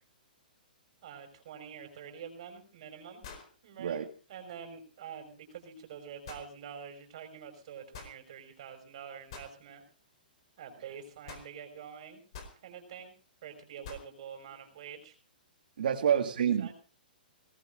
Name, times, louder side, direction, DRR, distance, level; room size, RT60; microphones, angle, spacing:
voice 1, 1.0-3.2 3.6-4.0 4.3-9.8 10.6-12.2 12.6-13.1 13.4-15.1 15.9-16.2 16.6-16.7, right 7 dB, 40° right, 6 dB, 5.7 m, -46 dB
sound 1, 3.2-3.6 6.3-6.5 7.9-8.2 9.3-9.5 11.3-11.5 12.3-12.6 13.8-14.1, left 5 dB, 35° left, 4.3 m, -46 dB
voice 2, 15.8-16.7, right 8 dB, 60° right, 3 dB, 2.0 m, -28 dB
23.5 x 19.5 x 2.6 m, 0.36 s
hypercardioid pair, 180°, 5 cm